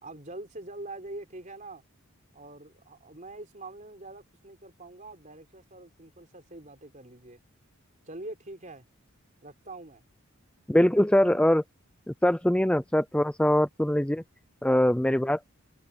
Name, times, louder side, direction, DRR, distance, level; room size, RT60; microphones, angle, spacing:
voice 1, 0.0-1.8 2.3-7.4 8.0-8.8 9.4-10.0, right 2 dB, 35° right, 4.2 m, -44 dB
voice 2, 10.7-11.6 12.1-14.2 14.6-15.4, left 1 dB, 5° left, 0.5 m, -23 dB
head